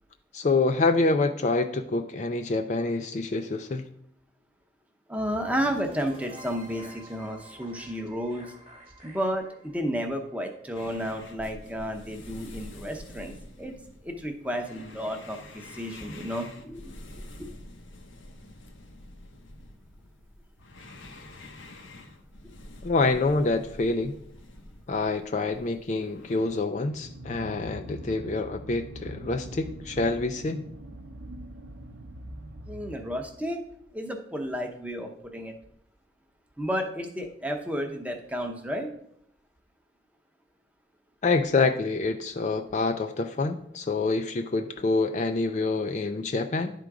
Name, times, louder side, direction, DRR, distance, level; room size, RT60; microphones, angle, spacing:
voice 1, 0.3-3.9 22.8-24.2 24.9-30.6 41.2-46.7, left 3 dB, 40° left, 7 dB, 0.4 m, -26 dB
voice 2, 5.1-8.5 9.0-13.7 14.0-17.0 32.7-33.6 33.9-35.5 36.6-38.9, equal, 5° right, 4 dB, 0.7 m, -32 dB
sound 1, 5.2-11.2, right 1 dB, 30° right, 1.3 m, -49 dB
sound 2, 10.7-26.6, left 1 dB, 90° left, 1.0 m, -47 dB
sound 3, 26.9-33.4, right 1 dB, 75° right, 0.7 m, -42 dB
11.0 x 3.8 x 4.7 m, 0.71 s
head